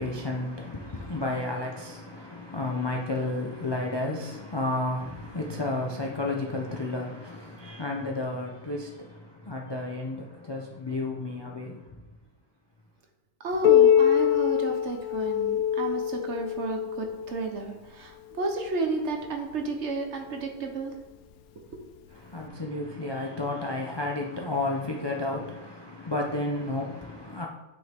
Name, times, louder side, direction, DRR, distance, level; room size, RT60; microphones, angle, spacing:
voice 1, 0.0-8.9 9.5-11.8 22.3-27.5, left 2 dB, 35° left, 0.4 m, -32 dB
voice 2, 13.4-20.9, right 3 dB, 55° right, 1.2 m, -32 dB
Piano, 13.6-19.0 19.8-19.9 20.4-20.5 21.3-21.4 22.4-22.5, left 10 dB, 80° left, 1.1 m, -24 dB
9.1 x 5.6 x 3.6 m
omnidirectional pair, 1.5 m